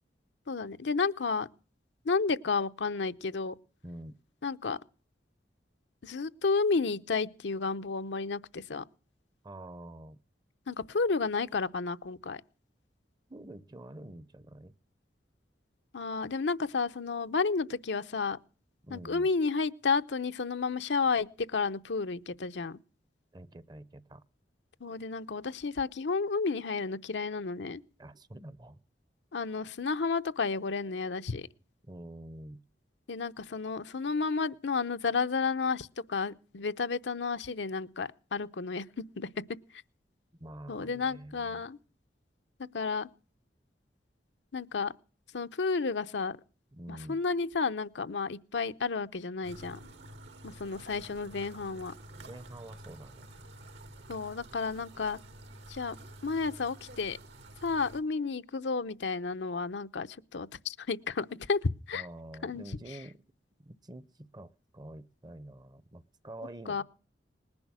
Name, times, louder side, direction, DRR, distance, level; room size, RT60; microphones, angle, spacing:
voice 1, 0.5-1.5 2.0-3.5 4.4-4.8 6.0-8.8 10.7-12.4 15.9-18.4 18.9-22.8 24.8-27.8 29.3-31.5 33.1-39.3 39.7-39.8 40.7-41.8 42.7-43.1 44.5-44.9 45.3-46.4 46.9-49.8 50.4-51.9 54.1-55.2 55.7-56.0 56.2-57.2 57.6-61.6 61.9-62.1 62.4-62.6 66.7-66.8, left 4 dB, 80° left, 0.7 m, -32 dB
voice 2, 3.8-4.2 9.4-10.2 13.3-14.7 18.8-19.3 23.3-24.2 28.0-28.8 31.8-32.6 40.4-41.6 46.7-47.2 52.2-53.3 61.9-63.2 63.6-66.8, right 1 dB, 25° right, 0.7 m, -47 dB
sound 1, 49.4-58.0, right 1 dB, 80° right, 2.6 m, -50 dB
20.0 x 11.0 x 6.2 m
head